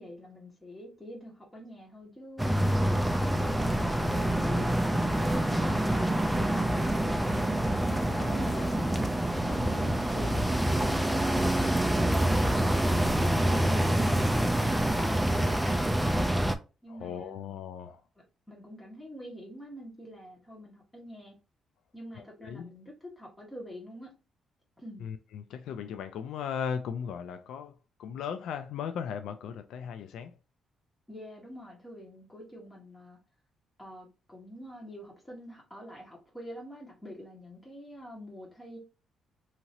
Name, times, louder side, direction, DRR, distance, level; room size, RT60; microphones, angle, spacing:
voice 1, 0.0-2.7 3.3-9.0 9.4-12.4 13.2-16.3 16.8-17.5 18.5-21.3 21.9-24.1 24.8-25.1 31.1-33.2 33.8-38.8, equal, 15° left, 1.4 m, -45 dB
sound 1, 2.4-16.6, right 1 dB, 5° right, 0.4 m, -26 dB
voice 2, 5.0-5.8 8.1-8.8 9.6-9.7 16.9-18.0 22.2-22.7 25.0-30.3, left 7 dB, 85° left, 0.3 m, -38 dB
2.8 x 2.8 x 2.7 m
cardioid pair, 110°, 0 cm